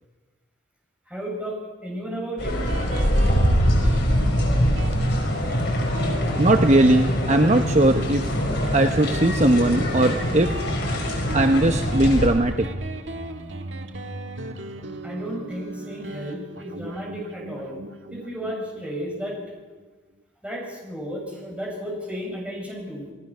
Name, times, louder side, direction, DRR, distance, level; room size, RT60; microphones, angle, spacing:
voice 1, 1.0-2.6 15.0-17.7 18.1-19.4 20.4-23.1, equal, 5° right, -2 dB, 7.6 m, -33 dB
sound 1, 2.4-12.3, equal, 65° left, 5.7 m, -23 dB
Guitar, 2.7-19.9, right 1 dB, 80° right, 1.7 m, -36 dB
voice 2, 6.4-8.2 8.7-10.5 11.3-12.7, right 1 dB, 40° right, 6 dB, 0.9 m, -19 dB
29.0 x 18.0 x 6.2 m, 1.3 s
head